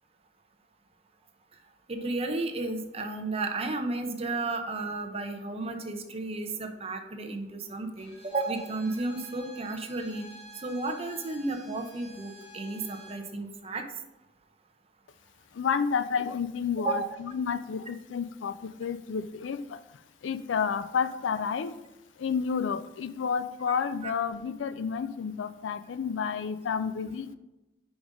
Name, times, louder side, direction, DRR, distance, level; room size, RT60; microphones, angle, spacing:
voice 1, 1.9-10.2 10.6-13.9 16.8-17.1 23.7-23.8 24.0-24.1, right 3 dB, 35° right, 4 dB, 0.7 m, -33 dB
Bowed string instrument, 8.0-13.3, equal, 35° left, 1.7 m, -50 dB
voice 2, 15.5-19.8 20.2-21.7 22.2-27.3, left 6 dB, 85° left, 13 dB, 0.4 m, -30 dB
5.2 x 5.0 x 5.0 m, 0.98 s
head